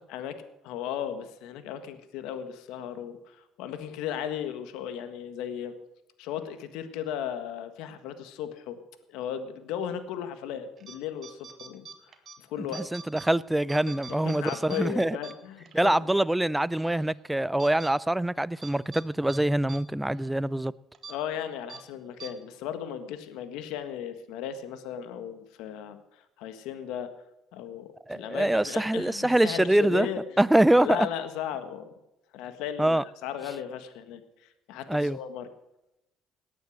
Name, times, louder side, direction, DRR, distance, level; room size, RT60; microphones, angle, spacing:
voice 1, 0.6-5.7 6.2-8.8 9.1-12.8 13.9-16.0 21.1-27.1 27.5-30.2 30.8-31.9 32.3-35.5, left 9 dB, 80° left, 1.6 m, -36 dB
sound 1, 10.8-11.0 11.2-12.4 12.7-13.3 13.6-15.8 16.2-16.3 16.7-17.1 17.6-17.9 18.6-19.0 19.3-19.4 19.7-19.8 20.1-20.3 20.9-21.1 21.7-21.8 22.2-22.3, right 6 dB, 45° right, 1.9 m, -44 dB
voice 2, 12.9-15.2 15.7-20.7 28.1-30.1 30.4-31.1 32.8-33.0 34.9-35.2, right 1 dB, 5° right, 0.5 m, -24 dB
18.0 x 9.5 x 6.4 m
supercardioid pair, 90°, 0 cm